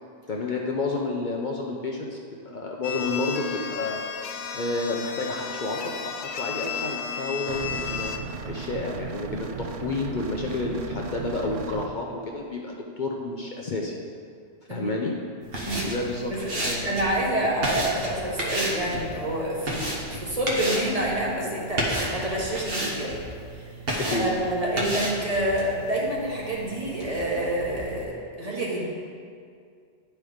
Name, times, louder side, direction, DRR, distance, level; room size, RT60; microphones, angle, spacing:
voice 1, 0.3-2.2 2.5-4.0 4.5-8.1 8.5-13.9 14.7-15.1 15.8-16.9 24.1-24.3, left 2 dB, 50° left, -1 dB, 0.8 m, -30 dB
sound 1, 2.8-8.2, left 7 dB, 80° left, 0.8 m, -33 dB
sound 2, 7.5-11.9, right 5 dB, 80° right, 0.9 m, -36 dB
sound 3, 15.4-28.0, right 1 dB, 60° right, 1.4 m, -32 dB
voice 2, 16.8-23.2 23.5-23.7 24.1-28.9, right 1 dB, 35° right, -5 dB, 1.4 m, -28 dB
9.5 x 4.4 x 4.9 m, 2.2 s
omnidirectional pair, 1.1 m